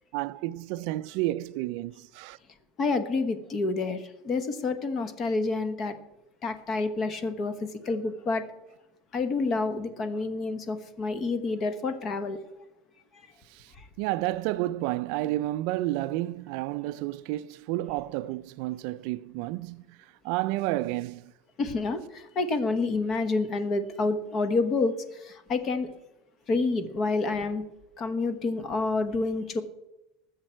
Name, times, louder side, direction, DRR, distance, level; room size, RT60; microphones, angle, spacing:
voice 1, 0.1-2.4 13.5-21.3, right 16 dB, 55° right, 0.3 m, -31 dB
voice 2, 2.8-6.0 6.4-8.4 9.1-12.4 13.7-13.9 21.6-25.9 26.5-27.6 28.0-29.6, left 3 dB, 30° left, 1.1 m, -28 dB
19.5 x 7.4 x 4.4 m
supercardioid pair, 170°, 0 cm